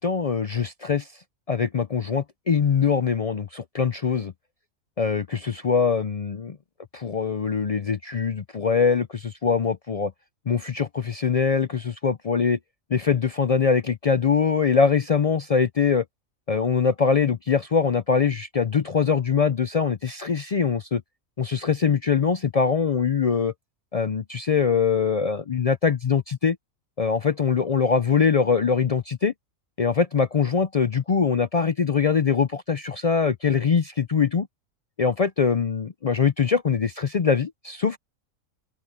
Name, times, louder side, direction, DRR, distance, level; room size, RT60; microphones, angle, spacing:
voice 1, 0.0-4.3 5.0-6.6 6.9-10.1 10.5-12.6 12.9-16.0 16.5-21.0 21.4-23.5 23.9-26.6 27.0-29.3 29.8-34.5 35.0-38.0, left 6 dB, 70° left, 0.3 m, -23 dB
omnidirectional pair, 1.4 m